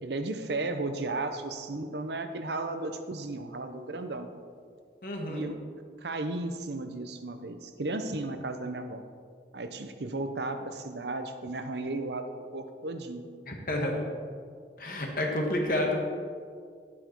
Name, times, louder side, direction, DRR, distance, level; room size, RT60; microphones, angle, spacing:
voice 1, 0.0-4.3 5.3-5.6 6.0-9.0 9.5-13.2, right 2 dB, 75° right, 7 dB, 0.8 m, -34 dB
voice 2, 5.0-5.4 13.5-14.0 14.8-16.0, left 1 dB, 50° left, 0 dB, 1.6 m, -29 dB
10.5 x 8.5 x 4.5 m, 2.1 s
head